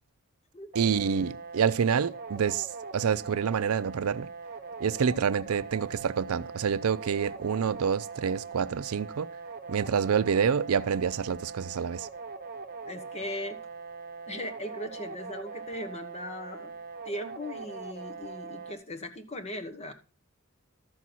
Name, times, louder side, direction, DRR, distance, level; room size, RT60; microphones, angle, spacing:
sound 1, 0.7-18.7, right 4 dB, 45° right, 1.0 m, -42 dB
voice 1, 0.7-2.7 2.9-4.3 4.8-9.3 9.7-12.1, right 7 dB, 85° right, 0.5 m, -27 dB
voice 2, 12.8-13.6 14.3-16.8 17.0-19.9, left 1 dB, 30° left, 1.2 m, -38 dB
13.5 x 6.2 x 4.1 m
head